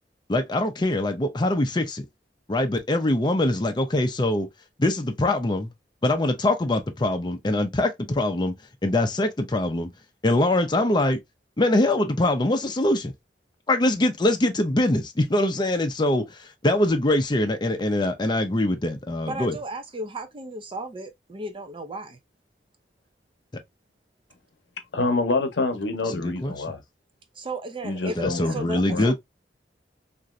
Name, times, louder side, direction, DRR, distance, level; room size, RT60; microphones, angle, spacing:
voice 1, 0.3-2.0 2.5-4.5 4.8-5.7 6.0-8.5 8.8-9.9 10.2-11.2 11.6-13.1 13.7-19.5 26.1-26.6 28.2-29.1, left 1 dB, 25° left, 0.5 m, -23 dB
voice 2, 19.3-22.2 27.3-28.2 28.5-29.1, right 1 dB, 30° right, 0.5 m, -35 dB
voice 3, 24.9-26.8 27.8-28.6 28.9-29.0, left 3 dB, 85° left, 0.7 m, -26 dB
3.0 x 2.6 x 2.4 m
head